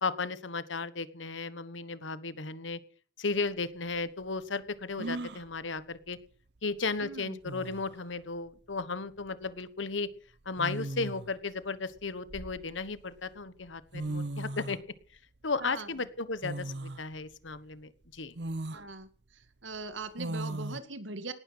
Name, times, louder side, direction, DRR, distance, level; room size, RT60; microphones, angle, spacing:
voice 1, 0.0-2.8 3.2-6.2 6.6-10.1 10.4-14.8 15.4-18.3, left 4 dB, 90° left, 15 dB, 1.3 m, -35 dB
sound 1, 3.4-3.5 5.0-5.5 7.0-7.1 7.4-7.9 9.3-9.5 10.6-11.3 12.0-13.0 13.7-13.8 13.9-14.8 16.4-17.0 17.5-17.6 18.3-18.8 20.2-20.8, right 2 dB, 65° right, 0.8 m, -37 dB
voice 2, 7.0-7.4 15.6-15.9 18.7-19.1 19.6-21.3, right 3 dB, 90° right, 10 dB, 2.1 m, -40 dB
18.5 x 12.5 x 5.7 m, 0.43 s
head